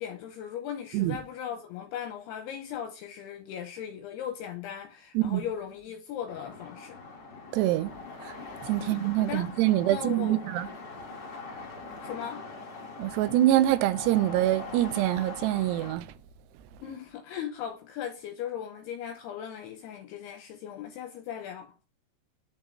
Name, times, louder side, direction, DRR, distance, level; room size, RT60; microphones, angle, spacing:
voice 1, 0.0-7.0 8.8-9.5 9.9-10.5 12.0-12.5 16.8-21.7, left 9 dB, 80° left, 2.6 m, -38 dB
sound 1, 6.3-15.9, left 3 dB, 45° left, 1.3 m, -43 dB
voice 2, 7.5-7.9 8.2-8.3 8.6-10.7 13.0-16.1, right 14 dB, 80° right, 2.7 m, -25 dB
8.8 x 5.5 x 3.2 m
omnidirectional pair, 4.9 m